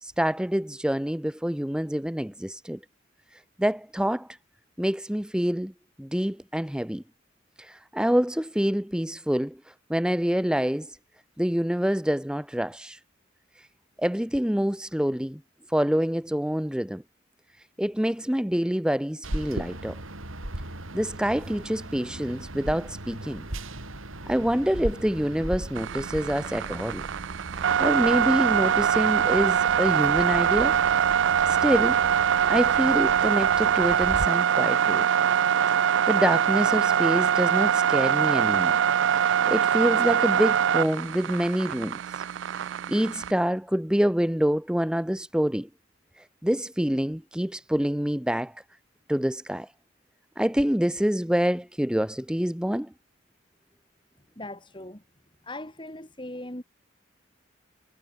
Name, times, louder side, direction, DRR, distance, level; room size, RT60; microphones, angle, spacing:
voice 1, 0.0-2.8 3.3-4.4 4.8-5.7 6.0-7.0 7.6-11.0 11.4-13.0 13.6-13.7 14.0-15.4 15.7-17.0 17.8-20.0 20.9-23.4 24.3-27.1 27.8-30.8 31.5-32.0 32.4-35.1 36.1-38.8 39.1-42.2 42.9-45.7 46.2-48.6 49.1-49.7 50.4-52.9, equal, 5° right, 0.6 m, -26 dB
sound 1, 19.2-34.3, right 1 dB, 90° right, 5.0 m, -38 dB
sound 2, 25.7-43.3, right 8 dB, 65° right, 0.3 m, -23 dB
voice 2, 54.4-55.0 55.4-56.6, left 1 dB, 25° left, 3.1 m, -39 dB
head